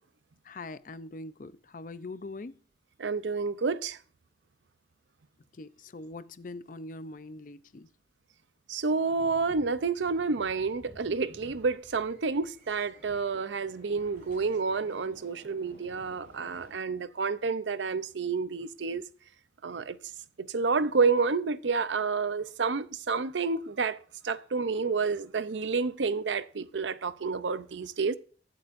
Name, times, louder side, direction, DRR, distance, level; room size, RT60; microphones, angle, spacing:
voice 1, 0.4-2.6 5.5-7.9, left 2 dB, 45° left, 0.5 m, -42 dB
voice 2, 3.0-4.0 8.7-19.0 19.6-20.0 20.4-24.0 24.2-28.2, right 4 dB, 85° right, 0.6 m, -29 dB
sound 1, 9.2-16.7, equal, 50° right, 5.9 m, -54 dB
23.5 x 7.8 x 2.6 m
head